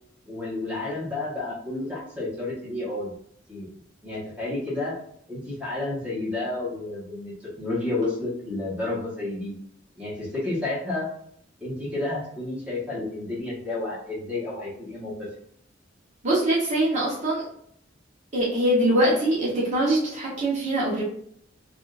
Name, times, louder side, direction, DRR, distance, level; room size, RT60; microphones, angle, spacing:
voice 1, 0.3-3.1 3.5-3.7 4.0-4.9 5.3-9.5 9.9-11.1 11.6-15.3, left 2 dB, 5° right, -7 dB, 1.2 m, -31 dB
voice 2, 16.2-17.4 18.3-21.0, right 1 dB, 40° right, -6 dB, 0.9 m, -23 dB
3.6 x 2.4 x 2.4 m, 0.66 s
head